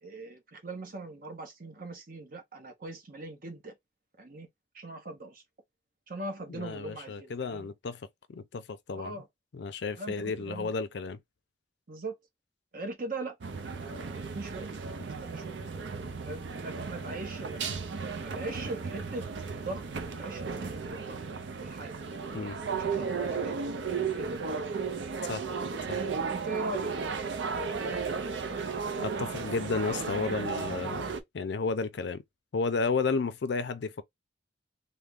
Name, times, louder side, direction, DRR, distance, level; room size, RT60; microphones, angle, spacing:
voice 1, 0.0-3.7 4.2-4.5 4.7-5.4 6.1-7.7 8.9-9.3 10.0-10.7 11.9-12.1 12.7-13.4 13.8-14.7 15.2-15.5 16.2-17.6 18.2-19.2 19.5-21.2 21.6-22.4 22.8-23.6 24.1-24.4 26.3-27.3, right 2 dB, 50° right, 0.9 m, -40 dB
voice 2, 6.5-9.2 9.5-11.2 22.3-22.6 25.2-25.5 25.9-26.0 29.0-31.1 31.3-32.2 32.5-34.0, left 4 dB, 65° left, 0.4 m, -32 dB
sound 1, 13.4-31.2, right 5 dB, 75° right, 0.6 m, -35 dB
3.4 x 2.1 x 3.5 m
head